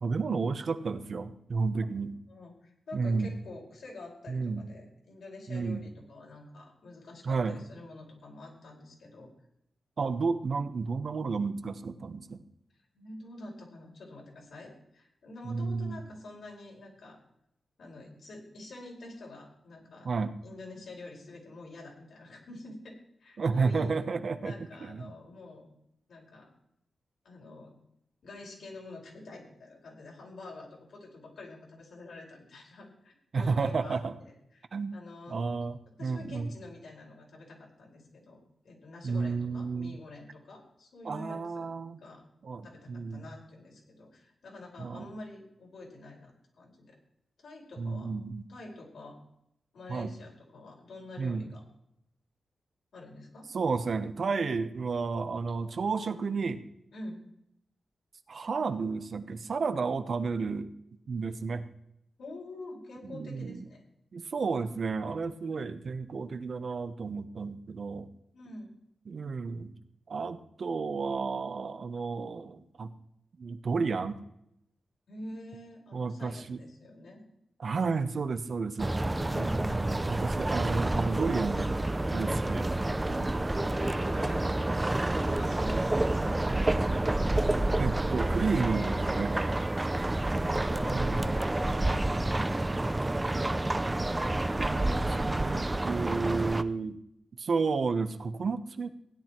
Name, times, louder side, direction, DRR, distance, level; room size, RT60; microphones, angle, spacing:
voice 1, 0.0-2.1 2.9-3.3 4.3-4.7 5.5-5.8 7.2-7.6 10.0-12.4 15.4-16.0 20.0-20.3 23.4-24.5 24.8-25.1 33.3-34.1 34.7-35.0 35.3-36.5 39.0-40.0 41.0-42.0 42.4-43.2 44.8-45.1 47.8-48.5 49.9-50.1 51.2-51.5 53.5-56.6 58.3-60.7 61.1-61.6 63.1-63.6 64.1-68.1 69.1-69.7 70.1-72.9 73.4-74.2 75.9-76.6 77.6-78.9 80.0-81.8 82.1-82.7 87.8-89.4 90.9-91.3 94.3-97.0 97.4-98.9, right 4 dB, 55° right, 9 dB, 0.9 m, -32 dB
voice 2, 2.3-9.3 12.9-17.2 17.8-20.1 20.4-22.9 23.2-24.0 24.4-25.7 26.1-26.5 27.2-27.7 28.2-34.7 34.9-35.4 36.0-41.7 42.0-42.2 42.6-46.9 47.4-48.1 48.5-49.2 49.7-51.6 52.9-53.5 56.9-57.2 62.2-63.8 65.4-65.6 68.3-68.7 75.1-77.2 79.3-80.0 83.1-84.8 85.1-86.5 89.8-93.1, left 2 dB, 80° left, -2 dB, 5.0 m, -47 dB
sound 1, 78.8-96.6, right 2 dB, 15° right, 0.5 m, -29 dB
16.5 x 10.5 x 4.5 m, 0.77 s
wide cardioid pair, 135°, 0 cm